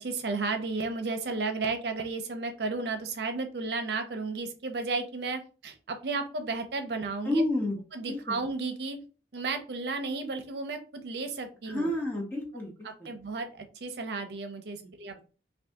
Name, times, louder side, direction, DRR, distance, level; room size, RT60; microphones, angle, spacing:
voice 1, 0.0-7.4 7.9-9.0 9.3-11.9 12.8-15.2, right 3 dB, 65° right, 7 dB, 0.5 m, -33 dB
voice 2, 7.2-7.8 8.1-8.2 11.7-13.1 14.8-14.9, left 1 dB, 10° left, -1 dB, 0.6 m, -30 dB
2.6 x 2.5 x 3.4 m, 0.36 s
head